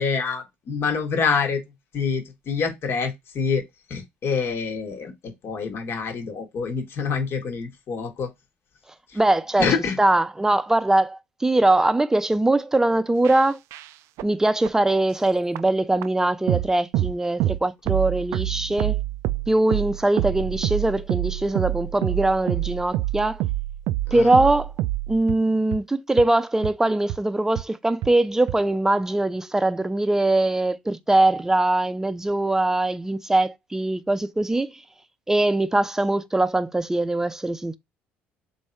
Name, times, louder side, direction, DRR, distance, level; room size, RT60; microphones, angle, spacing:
voice 1, 0.0-1.6 1.9-3.6 3.9-8.3 9.1-9.2 9.6-10.0 24.1-24.4, left 5 dB, 55° left, 1.2 m, -26 dB
voice 2, 9.1-9.7 10.0-13.6 14.2-19.0 19.5-23.4 24.1-24.7 25.1-34.7 35.3-37.8, right 2 dB, 10° right, 0.5 m, -22 dB
sound 1, 13.2-13.4 13.7-13.9 14.2-14.3 14.6-14.7 15.6-15.7 16.0-16.1 16.5-16.7 16.9-17.1 17.4-17.6 17.9-25.4 25.7-25.8 26.2-26.3 26.6-26.7 27.1-27.2 27.6-27.7 28.0-28.1 28.5-28.6, right 15 dB, 70° right, 0.3 m, -27 dB
3.5 x 2.6 x 4.3 m
supercardioid pair, 80°, 5 cm